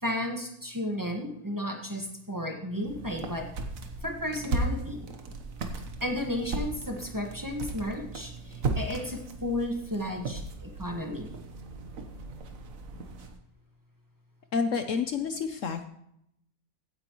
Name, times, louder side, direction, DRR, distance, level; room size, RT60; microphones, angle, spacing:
voice 1, 0.0-3.5 4.0-5.1 6.0-11.4, left 1 dB, 15° right, 1 dB, 1.4 m, -33 dB
sound 1, 2.8-13.4, right 3 dB, 65° right, 1.5 m, -36 dB
voice 2, 14.5-15.9, left 5 dB, 60° left, 8 dB, 1.0 m, -29 dB
16.0 x 9.5 x 3.0 m, 0.76 s
omnidirectional pair, 1.6 m